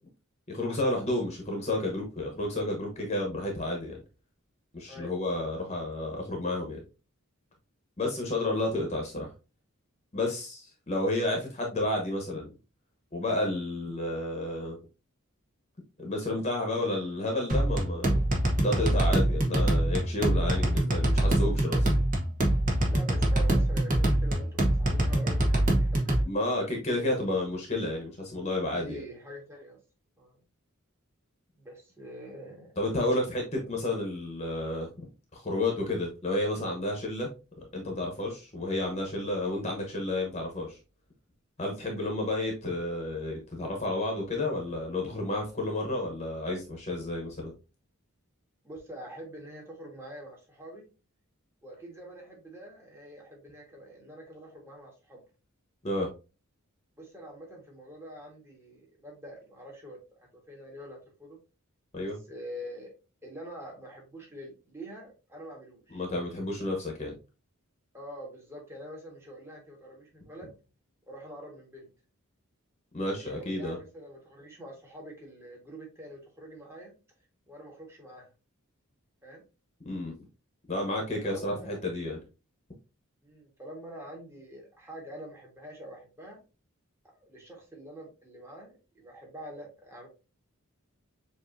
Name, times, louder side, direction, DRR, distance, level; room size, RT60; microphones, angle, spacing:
voice 1, 0.5-4.0 4.7-6.8 8.0-9.3 10.1-12.5 13.1-14.8 16.0-18.1 18.6-21.9 26.2-29.0 32.8-35.1 35.3-37.3 37.7-40.8 41.6-47.5 55.8-56.1 61.9-62.2 65.9-67.1 72.9-73.8 79.8-80.1 80.7-82.2, left 1 dB, 30° left, 1.0 m, -31 dB
voice 2, 4.9-5.5 22.9-26.3 28.7-29.8 30.2-30.4 31.6-32.7 33.6-33.7 41.8-42.1 48.6-50.8 51.6-55.2 57.0-61.4 62.0-62.9 63.2-66.0 67.9-70.5 71.1-71.9 73.2-76.9 77.5-78.3 79.2-79.4 81.1-81.8 83.2-86.4 87.3-90.1, equal, 10° right, 1.6 m, -45 dB
sound 1, 17.5-26.2, right 1 dB, 40° right, 1.0 m, -25 dB
7.0 x 2.7 x 2.6 m
head